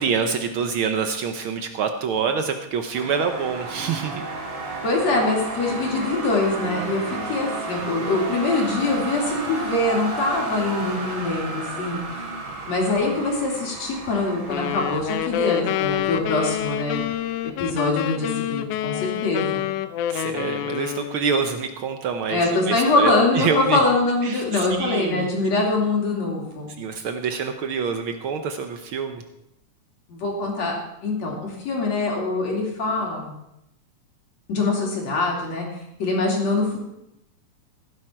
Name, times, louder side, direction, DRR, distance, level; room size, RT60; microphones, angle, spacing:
voice 1, 0.0-4.2 20.1-22.4 22.7-23.8 24.2-25.3 26.8-29.2, right 6 dB, 80° right, 6 dB, 1.1 m, -26 dB
sound 1, 2.9-17.8, right 3 dB, 60° right, 4.0 m, -33 dB
voice 2, 4.8-12.3 12.7-17.0 17.6-19.7 22.3-26.7 30.1-30.7 31.0-33.3 34.5-35.7 36.0-36.9, left 2 dB, 60° left, -1 dB, 3.9 m, -23 dB
sound 2, 14.5-21.3, left 12 dB, 80° left, 2.1 m, -27 dB
16.0 x 10.0 x 4.4 m, 0.86 s
omnidirectional pair, 3.5 m